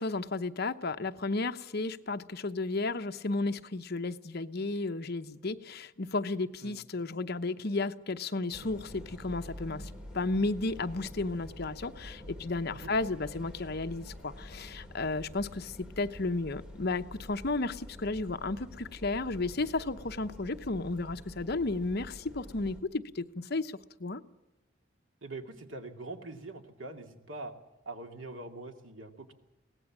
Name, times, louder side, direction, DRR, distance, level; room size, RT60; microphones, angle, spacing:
voice 1, 0.0-24.2, left 3 dB, 55° left, 9 dB, 0.9 m, -33 dB
sound 1, 8.5-22.8, left 1 dB, 5° right, 3.2 m, -47 dB
voice 2, 25.2-27.5 27.9-29.3, right 2 dB, 80° right, 5 dB, 2.4 m, -43 dB
23.0 x 18.0 x 7.3 m, 1.0 s
head